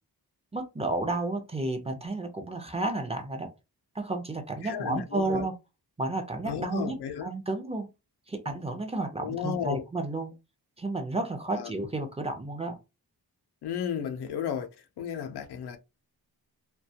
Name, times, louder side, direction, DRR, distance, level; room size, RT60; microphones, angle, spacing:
voice 1, 0.5-3.5 3.9-5.5 6.0-7.0 7.2-7.9 8.3-10.3 10.8-12.8, right 2 dB, 15° right, 0.5 m, -31 dB
voice 2, 4.6-5.5 6.4-7.3 9.2-9.8 11.5-11.7 13.6-14.7 15.0-15.8, left 8 dB, 85° left, 0.5 m, -33 dB
2.3 x 2.2 x 2.7 m
wide cardioid pair, 85°, 38 cm